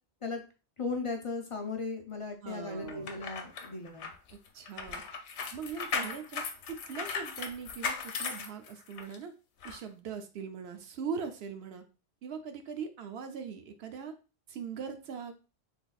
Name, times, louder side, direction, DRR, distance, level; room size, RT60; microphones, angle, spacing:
voice 1, 0.8-4.1, left 4 dB, 45° left, 3 dB, 0.4 m, -37 dB
voice 2, 2.4-3.2 4.5-5.0 5.5-9.3 9.6-11.8 12.2-14.1 14.5-15.5, right 6 dB, 70° right, 7 dB, 0.8 m, -41 dB
sound 1, 2.9-9.2 9.6-9.8, left 5 dB, 80° left, 0.9 m, -37 dB
3.9 x 3.4 x 2.3 m, 0.33 s
omnidirectional pair, 1.1 m